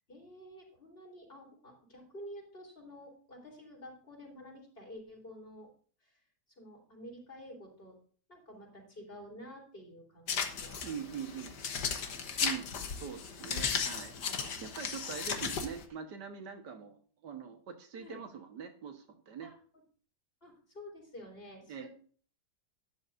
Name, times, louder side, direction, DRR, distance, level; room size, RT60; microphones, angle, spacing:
voice 1, 0.1-5.7 6.0-6.1 6.6-8.0 8.3-10.3 10.6-10.8 12.0-12.6 14.5-14.7 17.9-18.2 19.4-19.5 20.4-21.9, equal, 35° left, -1 dB, 4.2 m, -50 dB
sound 1, 10.3-15.8, left 6 dB, 80° left, 1.8 m, -36 dB
voice 2, 10.8-11.9 12.4-19.5 21.7-21.9, right 7 dB, 85° right, 6 dB, 1.9 m, -43 dB
12.0 x 10.5 x 2.6 m, 0.43 s
omnidirectional pair, 1.8 m